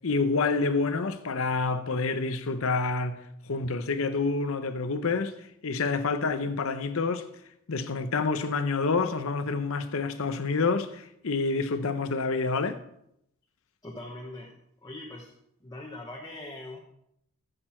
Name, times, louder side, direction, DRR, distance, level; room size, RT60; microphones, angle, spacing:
voice 1, 0.0-3.2 3.5-5.3 5.6-7.2 7.7-12.8, left 4 dB, 70° left, 0.8 m, -28 dB
voice 2, 13.8-14.6 14.8-15.3 15.6-16.8, left 1 dB, 20° left, 1.1 m, -41 dB
15.0 x 6.7 x 4.4 m
head